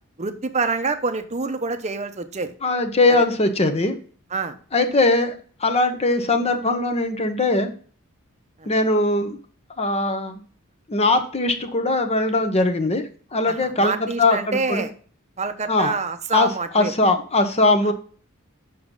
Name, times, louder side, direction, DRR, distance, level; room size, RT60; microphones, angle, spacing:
voice 1, 0.2-2.5 3.1-3.2 4.3-4.6 8.6-8.7 13.5-14.9 15.4-16.9 17.8-17.9, right 4 dB, 30° right, 9 dB, 0.8 m, -26 dB
voice 2, 2.6-4.0 4.7-7.7 8.6-9.4 9.8-10.4 10.9-13.0 13.3-14.8 15.7-16.0 16.3-16.5 16.7-17.9, left 2 dB, 30° left, 7 dB, 1.0 m, -20 dB
7.2 x 6.1 x 3.8 m, 0.43 s
head